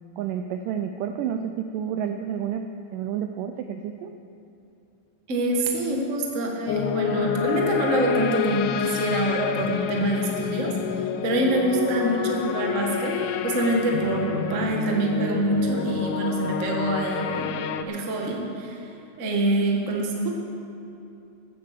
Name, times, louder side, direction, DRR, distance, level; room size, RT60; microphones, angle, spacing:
voice 1, 0.2-4.1, right 8 dB, 85° right, 6 dB, 1.9 m, -30 dB
voice 2, 5.3-13.2 13.4-17.6 17.8-18.9 19.2-20.3, right 2 dB, 55° right, 0 dB, 0.8 m, -25 dB
sound 1, 6.7-17.8, left 8 dB, 85° left, 1.7 m, -28 dB
14.5 x 9.4 x 6.7 m, 2.7 s
omnidirectional pair, 4.3 m